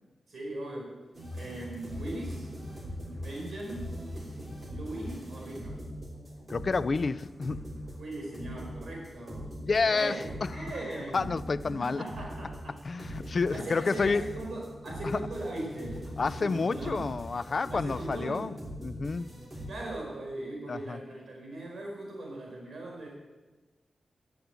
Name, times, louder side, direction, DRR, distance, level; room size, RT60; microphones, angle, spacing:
voice 1, 0.3-1.0 1.3-2.5 3.1-3.9 4.7-5.8 8.0-9.5 9.8-11.4 11.6-17.0 17.7-18.5 19.7-23.1, right 1 dB, 65° right, 4.5 m, -39 dB
sound 1, 1.1-19.7, equal, 25° right, 3.5 m, -42 dB
voice 2, 6.5-7.7 9.7-10.7 11.1-12.0 12.8-14.2 15.0-15.2 16.2-18.5 18.8-19.3 20.7-21.0, left 4 dB, 45° left, 0.4 m, -29 dB
13.0 x 10.5 x 8.0 m
wide cardioid pair, 155°, 0 cm